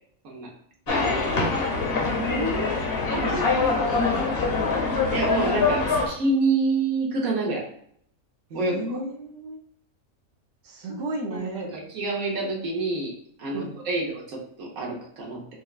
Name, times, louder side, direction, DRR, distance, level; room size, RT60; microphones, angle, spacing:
sound 1, 0.9-6.1, left 4 dB, 50° left, 0.8 m, -24 dB
voice 1, 0.9-1.2 3.1-3.7 5.1-7.7 8.5-8.7 11.3-13.1 13.4-15.5, right 3 dB, 80° right, -2 dB, 1.4 m, -27 dB
voice 2, 2.0-2.8 3.2-4.2 8.5-9.6 10.6-11.7 13.5-13.7, right 1 dB, 60° right, -2 dB, 1.1 m, -32 dB
6.2 x 2.2 x 2.4 m, 0.65 s
omnidirectional pair, 1.4 m